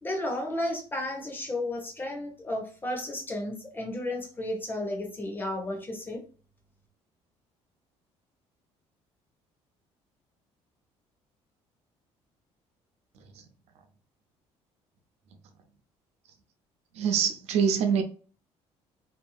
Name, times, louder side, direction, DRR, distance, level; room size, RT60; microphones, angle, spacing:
voice 1, 0.0-6.2, left 1 dB, 15° left, 0.8 m, -33 dB
voice 2, 16.9-18.0, right 7 dB, 70° right, 0.6 m, -25 dB
2.9 x 2.5 x 2.3 m
cardioid pair, 150°, 12 cm